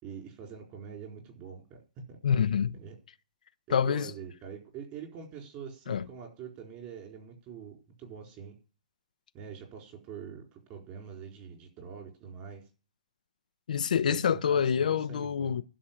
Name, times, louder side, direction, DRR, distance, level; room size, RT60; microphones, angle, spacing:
voice 1, 0.0-1.8 2.1-2.2 2.8-3.0 3.7-8.5 9.3-12.6 14.1-15.6, right 7 dB, 30° right, 4.5 m, -44 dB
voice 2, 2.2-2.8 3.7-4.1 5.9-6.1 13.7-15.6, left 7 dB, 80° left, 0.7 m, -27 dB
11.5 x 6.3 x 9.0 m
hypercardioid pair, 155°, 4 cm